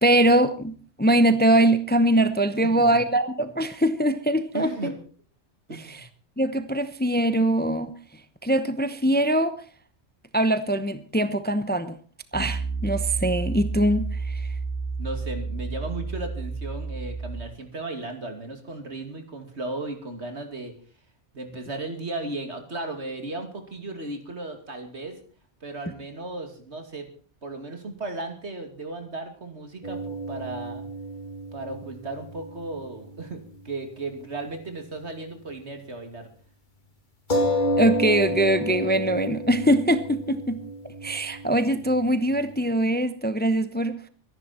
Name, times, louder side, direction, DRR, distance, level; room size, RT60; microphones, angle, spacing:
voice 1, 0.0-4.9 5.7-6.0 6.4-7.9 8.4-9.5 10.3-12.0 12.3-14.4 37.8-40.6 41.0-44.0, right 1 dB, 10° left, 0.8 m, -22 dB
voice 2, 4.5-4.9 5.7-6.1 15.0-20.8 21.3-25.2 25.6-27.1 27.4-30.8 31.5-36.3, right 2 dB, 70° right, 2.9 m, -35 dB
Piano, 12.3-17.4, right 4 dB, 10° right, 6.5 m, -31 dB
sound 1, 29.8-33.7 34.0-34.1 37.3-42.5, equal, 40° left, 2.3 m, -31 dB
24.0 x 11.0 x 4.4 m
omnidirectional pair, 1.2 m